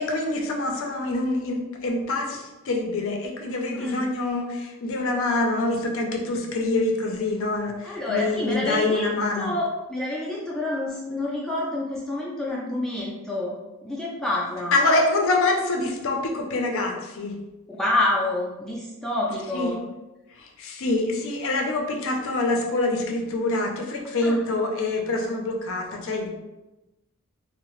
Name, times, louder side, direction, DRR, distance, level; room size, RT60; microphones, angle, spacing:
voice 1, 0.0-9.5 14.7-17.4 19.5-19.8 20.4-26.3, left 2 dB, 60° left, 2 dB, 0.5 m, -25 dB
voice 2, 3.7-4.1 7.8-9.1 9.4-13.5 13.8-14.7 17.7-19.8 24.2-24.4, left 2 dB, ahead, -5 dB, 0.3 m, -28 dB
2.7 x 2.0 x 2.9 m, 1.0 s
head